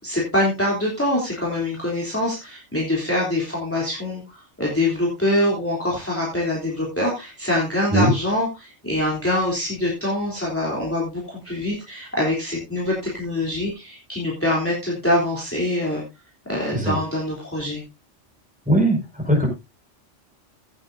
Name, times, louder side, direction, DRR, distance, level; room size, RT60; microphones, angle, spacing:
voice 1, 0.0-16.0 16.5-17.8, left 1 dB, 10° left, -4 dB, 3.5 m, -24 dB
voice 2, 18.7-19.5, right 1 dB, 5° right, -1 dB, 5.4 m, -19 dB
16.5 x 9.0 x 2.7 m, 0.26 s
omnidirectional pair, 1.2 m